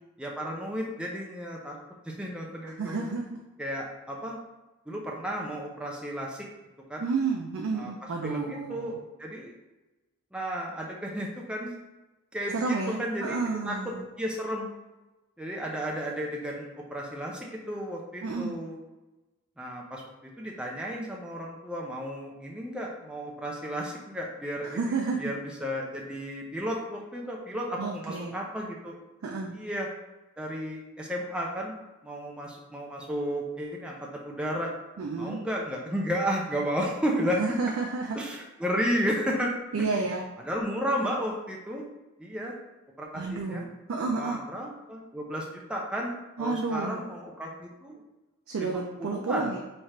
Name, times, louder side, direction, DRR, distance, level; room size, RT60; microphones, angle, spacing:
voice 1, 0.2-1.8 2.1-3.0 3.6-4.4 4.9-6.5 6.9-7.0 7.8-7.9 8.2-9.5 10.3-11.7 12.3-13.4 13.6-14.7 15.4-18.7 19.6-29.0 29.5-29.9 30.4-31.7 32.0-34.7 35.2-37.4 38.1-39.9 40.4-41.8 42.2-42.5 43.0-43.7 44.1-46.1 46.4-48.0 48.6-49.5, equal, 5° right, -2 dB, 0.4 m, -33 dB
voice 2, 2.8-3.2 7.0-9.0 12.5-14.0 18.2-18.6 24.7-25.3 27.8-28.4 29.2-29.5 35.0-35.4 37.4-38.2 39.7-40.2 43.1-44.4 46.4-47.0 48.5-49.6, right 4 dB, 65° right, 0 dB, 0.4 m, -31 dB
3.2 x 2.4 x 4.2 m, 1.1 s
head